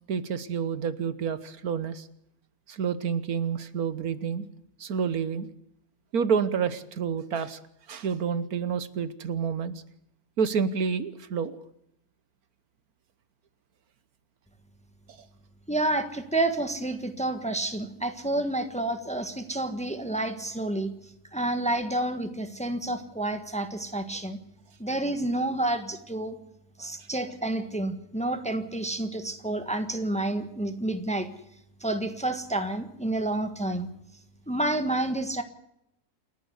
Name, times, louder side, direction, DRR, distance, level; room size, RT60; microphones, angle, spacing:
voice 1, 0.1-2.1 2.7-4.5 4.8-5.5 6.1-7.6 7.9-9.7 10.4-11.6, right 6 dB, 70° right, 14 dB, 1.5 m, -29 dB
voice 2, 15.7-20.9 21.3-24.4 24.8-26.4 26.8-31.3 31.8-33.9 34.5-35.4, right 2 dB, 5° left, 8 dB, 1.4 m, -29 dB
28.5 x 11.5 x 8.1 m, 0.79 s
omnidirectional pair, 1.7 m